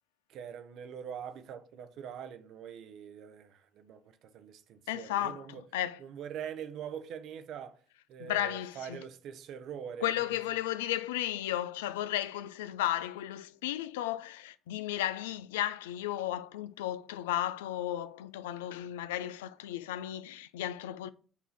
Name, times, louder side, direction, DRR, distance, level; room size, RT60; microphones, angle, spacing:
voice 1, 0.3-5.6 6.0-7.8 8.1-10.4, right 8 dB, 65° right, 0.7 m, -43 dB
voice 2, 4.9-6.0 8.2-9.0 10.0-21.1, left 12 dB, 90° left, 0.3 m, -34 dB
7.1 x 2.7 x 5.7 m
hypercardioid pair, 60°, 0 cm